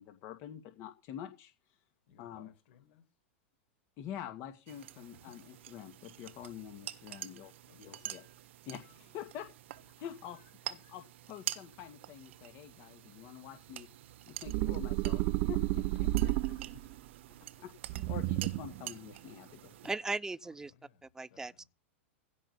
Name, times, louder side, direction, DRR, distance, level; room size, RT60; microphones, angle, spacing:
voice 1, 0.0-1.5 2.2-2.5 4.0-8.2 8.7-9.5 10.0-10.4 10.6-13.9 14.3-15.2 15.5-16.3 17.6-19.7, left 10 dB, 45° left, 2.3 m, -46 dB
voice 2, 2.1-3.0 5.2-5.5 7.6-8.1 8.9-9.2 9.9-10.0 10.3-10.9 16.1-17.0 18.0-18.6 20.4-21.7, left 7 dB, 60° left, 6.0 m, -62 dB
sound 1, 4.7-20.0, right 13 dB, 70° right, 1.3 m, -47 dB
Deep Growl, 14.5-16.9 17.9-18.8, right 19 dB, 50° right, 0.7 m, -31 dB
voice 3, 19.8-20.7 21.2-21.6, right 3 dB, 10° right, 0.6 m, -37 dB
16.5 x 5.6 x 8.3 m
hypercardioid pair, 115°, 7 cm